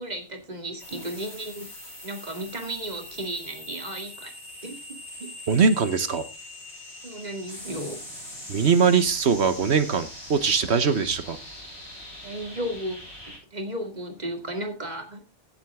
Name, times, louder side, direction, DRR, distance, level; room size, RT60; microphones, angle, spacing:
voice 1, 0.0-1.7 2.0-4.3 4.6-4.8 5.2-5.3 7.0-8.0 12.2-13.0 13.5-15.3, right 1 dB, 40° right, 2.3 m, -34 dB
sound 1, 0.8-13.4, left 1 dB, 75° left, 7.0 m, -42 dB
voice 2, 5.5-6.2 8.5-11.4, right 5 dB, 80° right, 1.4 m, -21 dB
15.5 x 7.4 x 3.6 m
omnidirectional pair, 1.1 m